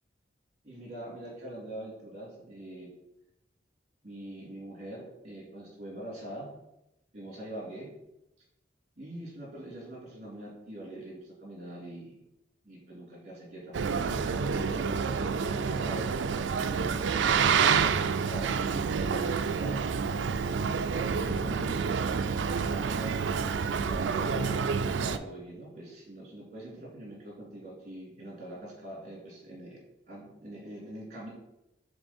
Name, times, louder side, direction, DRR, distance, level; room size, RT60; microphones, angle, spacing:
voice 1, 0.6-2.9 4.0-6.5 7.1-7.9 9.0-12.2 12.6-13.8 14.4-16.2 16.6-20.2 20.9-21.9 22.4-29.8 30.1-31.3, right 1 dB, 40° right, -3 dB, 2.4 m, -43 dB
Boat Water vehicle, 13.7-25.2, right 6 dB, 80° right, 0.4 m, -28 dB
6.7 x 3.7 x 4.3 m, 0.89 s
head